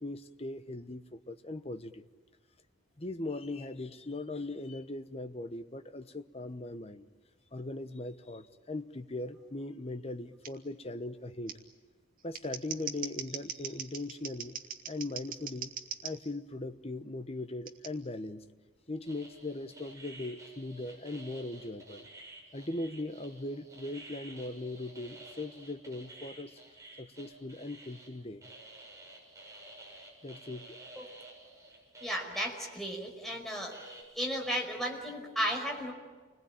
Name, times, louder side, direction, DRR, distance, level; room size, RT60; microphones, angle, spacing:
voice 1, 0.0-2.1 3.0-7.1 7.5-11.6 12.2-14.6 14.9-15.7 16.0-18.4 18.9-22.1 22.5-26.6 27.0-28.5 30.2-30.8, left 2 dB, 30° left, 1.1 m, -39 dB
Scissors, 10.4-10.5 11.5-11.6 12.2-16.1 17.7-17.9, right 7 dB, 45° right, 2.2 m, -40 dB
sound 1, 19.0-28.1 28.4-32.6 33.3-33.4 33.7-34.0, right 1 dB, 15° right, 6.8 m, -52 dB
voice 2, 32.0-33.7 34.1-35.9, equal, ahead, 5.2 m, -34 dB
29.0 x 21.0 x 9.0 m
head